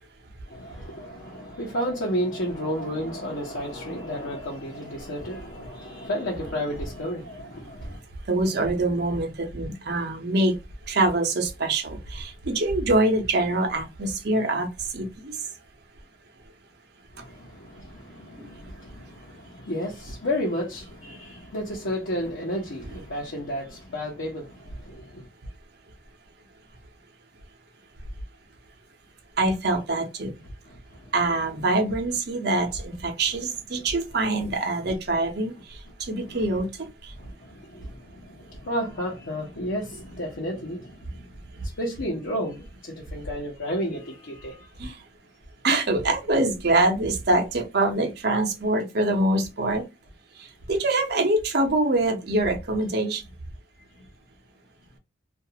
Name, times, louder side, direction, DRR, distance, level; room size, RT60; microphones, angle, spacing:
voice 1, 0.5-8.0 17.1-25.3 30.7-31.1 36.1-36.4 37.2-41.3 41.6-44.7 54.0-54.1, equal, 90° left, 0.8 m, -32 dB
voice 2, 8.2-10.6 10.9-15.5 17.2-17.3 18.4-18.5 29.4-30.3 31.1-37.2 44.8-45.0 45.6-49.9 50.4-53.2, right 2 dB, 55° right, 0.7 m, -25 dB
2.4 x 2.3 x 2.8 m
head